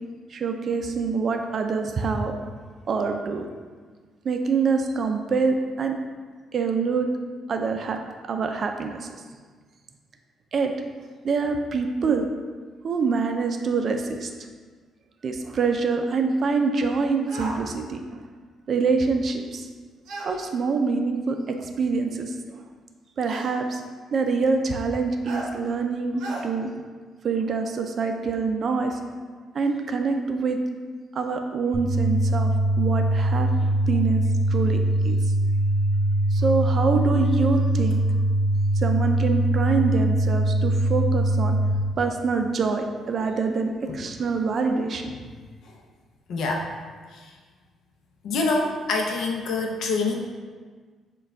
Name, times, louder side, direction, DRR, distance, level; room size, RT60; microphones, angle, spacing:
voice 1, 0.3-2.3 2.9-3.5 4.2-6.0 6.5-7.1 7.5-9.1 10.5-10.7 11.2-12.3 12.8-14.3 15.2-18.0 18.7-19.7 20.2-22.6 23.2-23.8 24.1-26.7 27.2-29.0 29.5-30.6 31.1-32.5 32.8-34.2 34.5-35.3 36.3-38.0 38.8-41.6 42.0-45.1, right 4 dB, 40° right, 5 dB, 0.4 m, -25 dB
sound 1, 17.3-17.6 20.0-20.3 21.6-21.7 23.3-23.5 25.2-25.5 26.2-26.4, right 2 dB, 80° right, 0.6 m, -34 dB
sound 2, 31.7-41.7, right 1 dB, 15° right, 0.9 m, -22 dB
voice 2, 46.3-46.7 47.1-47.3 48.2-50.2, left 3 dB, 65° left, 1 dB, 0.6 m, -26 dB
6.5 x 2.3 x 3.4 m, 1.5 s
cardioid pair, 155°, 0 cm